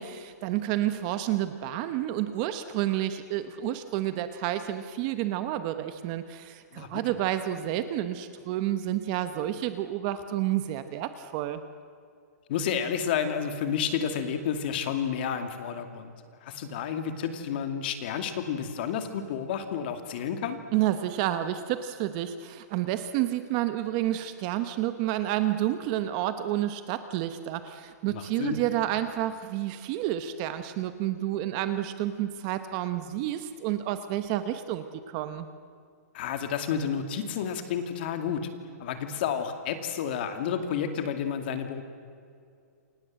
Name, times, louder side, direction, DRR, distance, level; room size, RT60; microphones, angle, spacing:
voice 1, 0.0-11.6 20.7-35.5, right 13 dB, 25° right, 10 dB, 0.9 m, -30 dB
voice 2, 12.5-16.1 16.4-20.6 28.1-28.6 36.1-38.5 38.8-41.8, left 7 dB, 35° left, 7 dB, 2.5 m, -31 dB
29.0 x 25.0 x 7.7 m, 2.4 s
hypercardioid pair, 175°, 9 cm